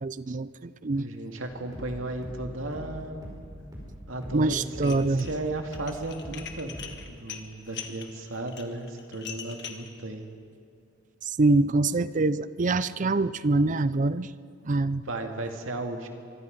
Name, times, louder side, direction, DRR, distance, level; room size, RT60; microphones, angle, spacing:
voice 1, 0.0-1.1 4.3-5.3 11.2-14.3 14.6-15.0, right 2 dB, 40° right, 16 dB, 0.5 m, -25 dB
voice 2, 0.9-3.3 4.1-6.7 7.1-10.3 15.1-16.1, right 2 dB, 85° right, 4 dB, 2.2 m, -35 dB
sound 1, 1.5-7.1, equal, 20° right, 5.1 m, -43 dB
Dishes pots and pans, 4.7-5.3 5.7-9.9, left 8 dB, 60° left, 1.7 m, -41 dB
24.5 x 24.0 x 5.3 m, 2.3 s
head